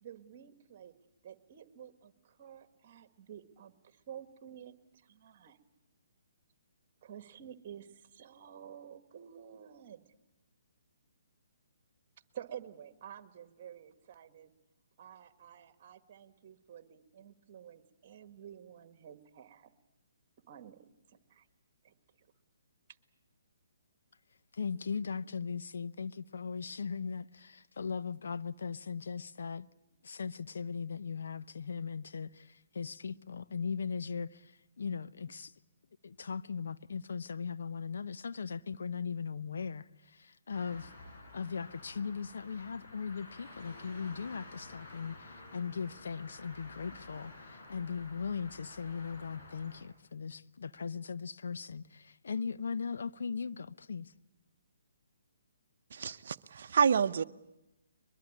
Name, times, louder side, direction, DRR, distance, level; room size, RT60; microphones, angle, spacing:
voice 1, 0.0-0.9 1.2-5.6 7.0-10.1 12.3-14.5 15.0-19.7 20.5-21.5 21.8-22.3, right 9 dB, 40° right, 1.7 m, -51 dB
voice 2, 24.5-29.7 30.0-35.5 36.0-40.9 41.3-54.1, left 5 dB, 70° left, 0.8 m, -39 dB
sound 1, 40.5-49.8, left 2 dB, 55° left, 6.5 m, -52 dB
voice 3, 55.9-57.2, right 6 dB, 60° right, 0.8 m, -28 dB
22.5 x 21.5 x 8.7 m
hypercardioid pair, 145°, 0 cm